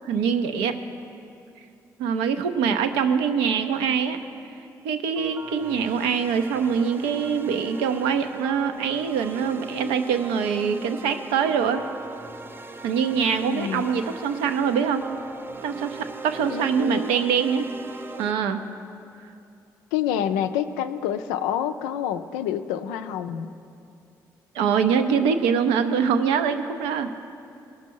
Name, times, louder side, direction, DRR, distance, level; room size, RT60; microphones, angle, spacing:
voice 1, 0.1-0.8 2.0-4.2 4.8-11.9 12.8-15.1 15.6-17.7 18.2-18.6 24.5-27.1, right 6 dB, 75° right, 8 dB, 0.5 m, -24 dB
sound 1, 5.2-18.3, right 3 dB, 25° right, 0.7 m, -40 dB
voice 2, 13.5-14.0 16.5-17.0 19.9-23.5, left 9 dB, 75° left, 10 dB, 0.4 m, -28 dB
17.5 x 6.0 x 4.5 m, 2.6 s
hypercardioid pair, 40°, 10 cm